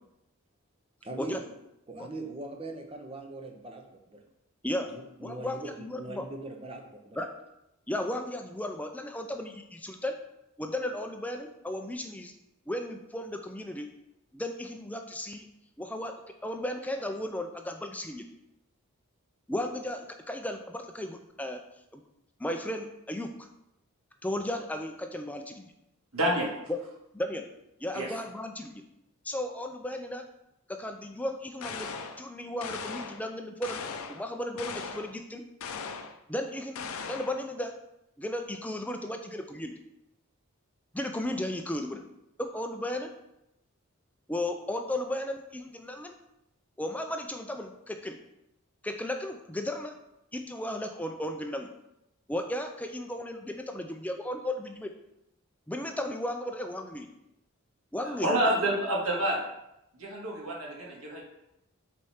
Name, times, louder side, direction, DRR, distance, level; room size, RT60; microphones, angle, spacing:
voice 1, 1.0-1.4 1.9-4.2 4.9-7.3, right 2 dB, 25° right, 4 dB, 0.7 m, -41 dB
voice 2, 5.2-6.2 7.2-7.3 7.9-10.1 10.6-12.3 12.7-13.9 14.3-15.5 15.8-16.2 16.4-18.2 19.5-21.6 21.9-22.0 22.4-23.3 24.2-25.7 27.1-27.5 27.8-28.8 29.2-30.2 30.7-33.8 34.1-35.4 36.3-37.8 38.2-39.7 40.9-42.0 42.4-43.1 44.3-46.1 46.8-48.2 48.8-49.9 50.3-51.7 52.3-54.9 55.7-57.1 57.9-58.4, left 1 dB, 5° left, 5 dB, 0.4 m, -35 dB
voice 3, 26.1-26.5 27.9-28.1 58.0-59.4 60.0-61.2, right 1 dB, 80° right, -2 dB, 1.9 m, -28 dB
sound 1, 31.6-32.2 32.6-33.2 33.6-34.2 34.6-35.1 35.6-36.2 36.8-37.4, left 5 dB, 75° left, 0.5 m, -38 dB
4.9 x 4.3 x 5.6 m, 0.86 s
head